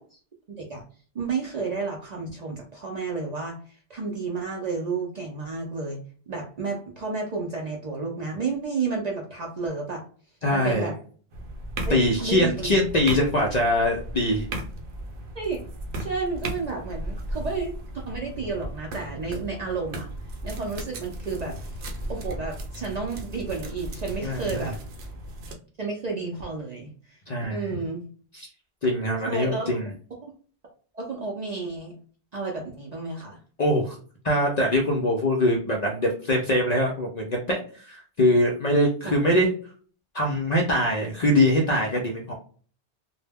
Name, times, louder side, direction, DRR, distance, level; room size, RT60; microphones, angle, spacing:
voice 1, 1.1-6.0 6.3-10.0 10.5-10.9 11.9-12.8 15.4-15.6 16.0-20.1 20.4-21.6 22.1-24.8 25.8-27.2 27.5-28.1 29.3-29.8 30.2-30.3 30.9-31.9 32.3-33.4 39.0-39.2, right 4 dB, 55° right, -1 dB, 0.5 m, -31 dB
voice 2, 10.4-10.9 11.9-14.5 24.2-24.7 27.3-27.8 28.3-28.5 28.8-29.9 33.6-34.0 34.2-39.6 40.1-42.3, left 1 dB, 55° left, 0 dB, 0.5 m, -23 dB
sound 1, 11.3-25.6, right 1 dB, 70° right, 0.8 m, -36 dB
2.1 x 2.0 x 3.3 m, 0.43 s
omnidirectional pair, 1.1 m